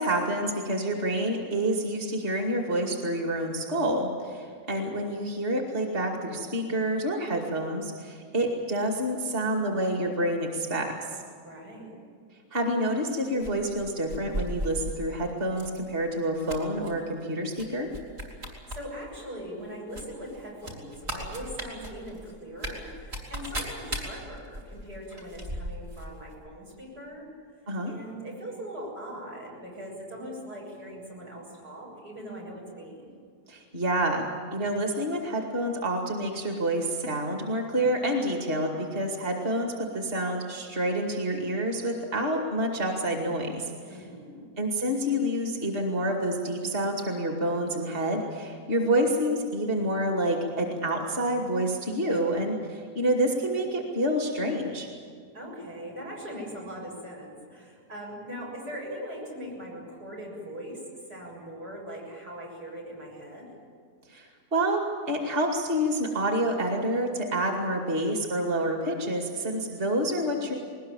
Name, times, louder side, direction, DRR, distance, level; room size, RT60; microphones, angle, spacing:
voice 1, 0.0-10.9 12.5-17.9 27.7-27.9 33.5-44.0 44.6-54.9 64.1-70.5, right 1 dB, 35° right, 2 dB, 2.5 m, -28 dB
voice 2, 11.4-12.0 18.4-27.3 27.9-33.1 43.9-44.5 55.3-60.8 61.1-63.5, equal, 85° right, -3 dB, 7.9 m, -41 dB
sound 1, 13.4-15.0 15.5-15.8 16.1-16.9 17.5-17.7 17.9-18.8 19.1-19.2 19.9-26.1 26.3-26.4, right 1 dB, 55° right, 4.7 m, -36 dB
21.0 x 20.0 x 9.0 m, 2.1 s
omnidirectional pair, 1.7 m